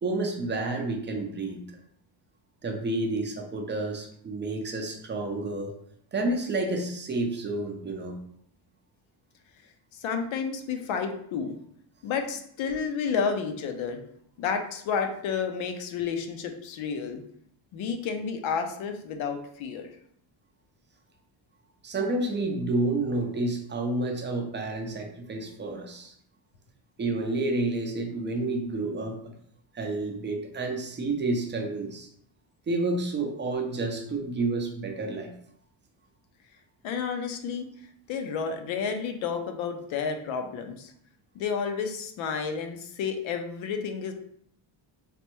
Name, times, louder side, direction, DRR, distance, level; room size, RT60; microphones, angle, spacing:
voice 1, 0.0-1.6 2.6-5.7 6.1-8.2 21.8-26.1 27.0-29.2 29.7-32.1 32.7-35.3, right 2 dB, 25° right, 3 dB, 0.4 m, -30 dB
voice 2, 9.9-11.6 12.0-14.0 14.4-17.2 17.7-19.9 36.8-37.7 38.1-40.9 41.3-44.1, left 6 dB, 75° left, 6 dB, 0.6 m, -31 dB
3.3 x 2.1 x 3.0 m, 0.68 s
cardioid pair, 115°, 48 cm